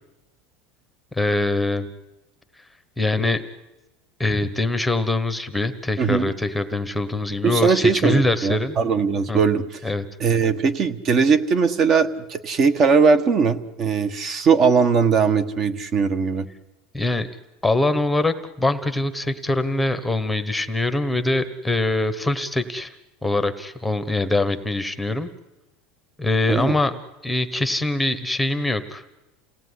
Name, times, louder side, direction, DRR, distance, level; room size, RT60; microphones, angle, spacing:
voice 1, 1.1-1.9 3.0-3.4 4.2-8.8 9.3-9.4 9.8-10.0 16.9-17.3 17.6-22.9 23.2-25.3 26.2-27.0 27.2-29.2, left 2 dB, 5° left, 10 dB, 1.2 m, -23 dB
voice 2, 6.0-6.3 7.4-9.8 10.2-16.5 26.5-26.7, right 5 dB, 35° right, 12 dB, 1.5 m, -20 dB
29.0 x 18.0 x 9.8 m, 1.0 s
supercardioid pair, 150°, 0 cm